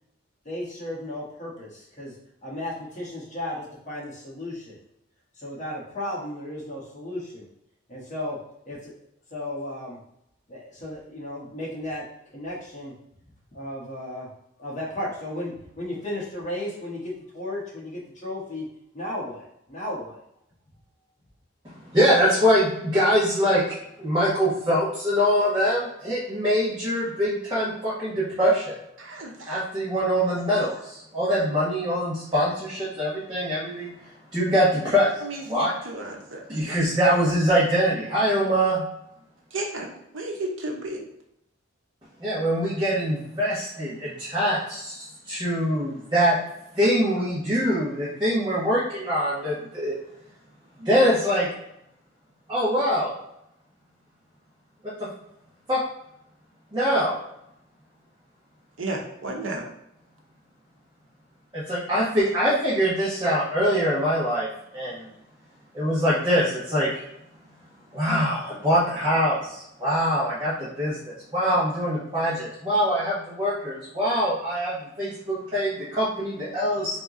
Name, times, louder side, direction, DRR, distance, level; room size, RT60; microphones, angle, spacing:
voice 1, 0.4-2.2 2.4-4.8 5.3-7.5 7.9-8.9 9.3-10.0 10.5-12.1 12.3-12.9 13.5-14.3 14.6-18.7 18.9-20.2, left 1 dB, 40° left, -5 dB, 1.2 m, -34 dB
voice 2, 21.9-23.6 24.0-28.6 29.5-33.9 34.3-35.1 35.4-35.7 36.5-38.8 42.2-46.4 46.7-49.9 50.8-51.5 52.5-53.1 55.7-55.8 56.7-57.2 61.5-64.5 64.7-65.0 65.7-67.0 67.9-77.0, equal, 25° right, -9 dB, 1.1 m, -23 dB
voice 3, 29.0-29.6 35.2-36.4 39.5-39.9 40.1-41.0 58.8-59.6, right 2 dB, 75° right, 1 dB, 0.9 m, -33 dB
3.5 x 2.9 x 3.7 m, 0.79 s
head